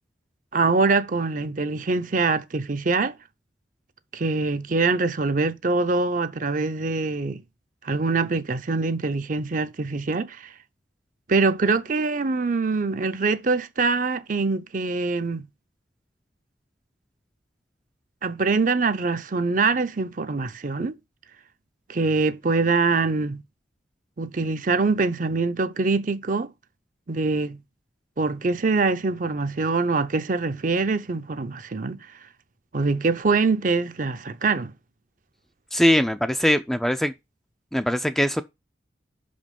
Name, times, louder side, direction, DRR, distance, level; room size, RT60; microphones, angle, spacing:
voice 1, 0.5-3.1 4.1-7.4 7.8-10.5 11.3-15.4 18.2-21.0 21.9-23.4 24.2-26.5 27.1-27.6 28.2-32.1 32.7-34.7, right 3 dB, 45° right, 0.6 m, -24 dB
voice 2, 35.7-37.1 37.7-38.4, equal, ahead, 0.4 m, -21 dB
5.9 x 5.2 x 5.3 m
head